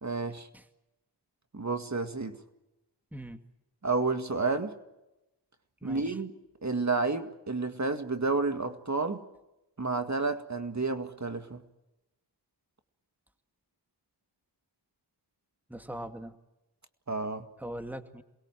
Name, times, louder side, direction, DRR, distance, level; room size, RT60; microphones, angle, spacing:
voice 1, 0.0-0.5 1.5-2.4 3.8-4.7 5.8-6.3 6.6-9.2 9.8-11.6 17.1-17.4, right 3 dB, 40° right, 2.0 m, -30 dB
voice 2, 5.8-6.2 15.7-16.4 17.6-18.2, right 1 dB, 5° right, 2.1 m, -41 dB
28.0 x 21.5 x 7.6 m
wide cardioid pair, 75°, 42 cm